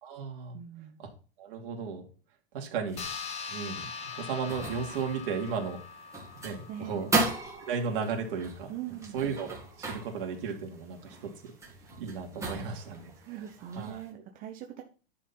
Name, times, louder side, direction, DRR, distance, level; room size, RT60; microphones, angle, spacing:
voice 1, 0.0-0.6 1.0-1.1 1.4-2.0 2.5-3.0 3.5-3.9 4.2-5.8 6.4-7.1 7.6-8.7 9.1-11.2 11.4-11.5 12.0-13.1 13.7-14.0, right 5 dB, 60° right, 2 dB, 2.8 m, -34 dB
voice 2, 0.5-1.0 6.7-7.1 8.7-9.2 13.2-14.8, right 10 dB, 25° right, 3 dB, 0.9 m, -41 dB
sound 1, 2.9-14.1, right 2 dB, 10° right, 1.9 m, -37 dB
sound 2, 3.0-7.8, left 6 dB, 20° left, 1.3 m, -42 dB
10.5 x 4.5 x 5.7 m, 0.36 s
supercardioid pair, 160°, 31 cm